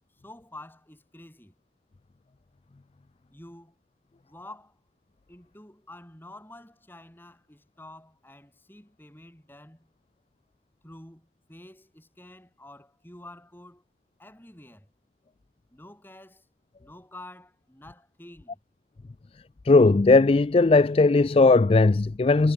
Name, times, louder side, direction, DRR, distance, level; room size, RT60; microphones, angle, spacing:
voice 1, 0.2-1.5 3.3-3.7 4.2-4.7 5.3-9.9 10.8-13.8 14.2-14.9 15.7-16.5 16.8-18.6, left 1 dB, 10° left, 4.1 m, -48 dB
voice 2, 19.7-22.5, left 3 dB, 30° left, 0.4 m, -18 dB
head